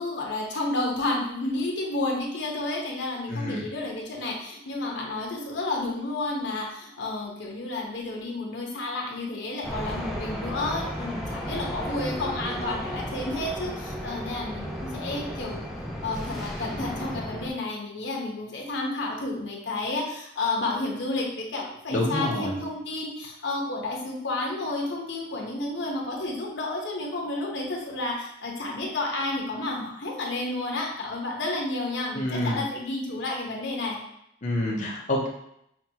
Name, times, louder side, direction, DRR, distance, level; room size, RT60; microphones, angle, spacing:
voice 1, 0.0-15.7 16.0-34.0, left 2 dB, 75° left, -1 dB, 0.9 m, -31 dB
voice 2, 3.3-3.7 21.9-22.6 32.1-32.6 34.4-35.3, left 1 dB, 45° left, -3 dB, 0.7 m, -27 dB
sound 1, 9.6-17.5, equal, ahead, 0.4 m, -34 dB
5.8 x 2.3 x 2.8 m, 0.76 s
head